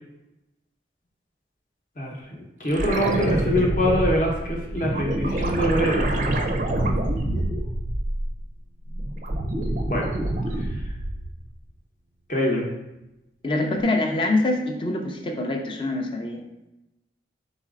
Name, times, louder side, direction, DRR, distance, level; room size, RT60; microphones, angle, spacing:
voice 1, 2.0-6.2 9.9-10.1 12.3-12.7, equal, 45° left, -1 dB, 0.8 m, -24 dB
sound 1, 2.7-8.5 8.9-11.4 13.8-13.9, right 1 dB, 45° right, 0.4 m, -26 dB
voice 2, 13.4-16.4, left 2 dB, 30° left, 3 dB, 0.4 m, -25 dB
4.1 x 4.0 x 2.4 m, 0.95 s
head